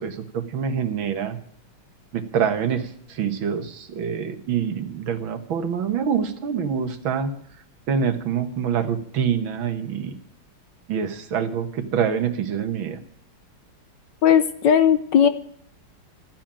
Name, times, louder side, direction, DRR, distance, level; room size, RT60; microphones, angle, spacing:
voice 1, 0.0-1.4 2.1-7.3 7.9-10.2 10.9-13.0, right 7 dB, 65° right, 9 dB, 2.0 m, -26 dB
voice 2, 14.2-15.3, left 8 dB, 65° left, 12 dB, 1.3 m, -17 dB
14.0 x 8.9 x 8.7 m, 0.62 s
omnidirectional pair, 2.4 m